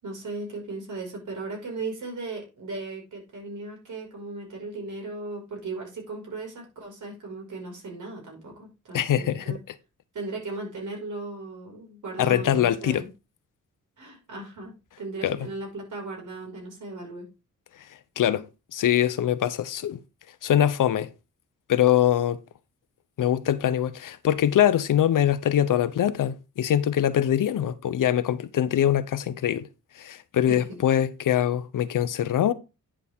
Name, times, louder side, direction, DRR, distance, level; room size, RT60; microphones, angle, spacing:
voice 1, 0.0-9.6 10.1-13.1 14.0-17.3 30.5-30.6, right 3 dB, 70° right, 5.5 m, -37 dB
voice 2, 8.9-9.6 12.2-13.0 15.2-15.5 18.2-18.4 18.7-20.0 20.4-21.1 21.7-22.4 23.2-29.7 30.0-32.5, left 10 dB, 80° left, 0.9 m, -23 dB
10.0 x 6.9 x 3.6 m
cardioid pair, 95°, 31 cm